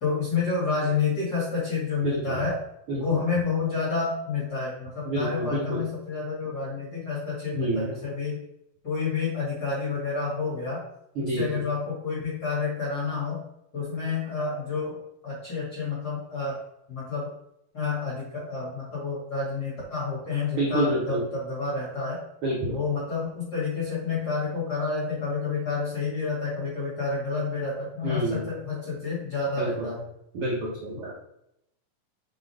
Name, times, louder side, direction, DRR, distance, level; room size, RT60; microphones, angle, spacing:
voice 1, 0.0-2.5 2.9-8.4 8.8-10.8 11.2-13.4 13.7-15.0 15.2-16.6 16.9-17.3 17.7-22.2 22.6-30.0, left 4 dB, 35° left, -5 dB, 1.9 m, -29 dB
voice 2, 2.0-2.4 2.9-3.2 5.0-5.8 7.5-7.9 11.2-11.6 20.5-21.2 22.4-22.8 28.0-28.5 29.6-29.9 30.3-31.1, right 1 dB, 70° right, -5 dB, 1.3 m, -28 dB
7.7 x 4.1 x 3.4 m, 0.80 s
omnidirectional pair, 4.3 m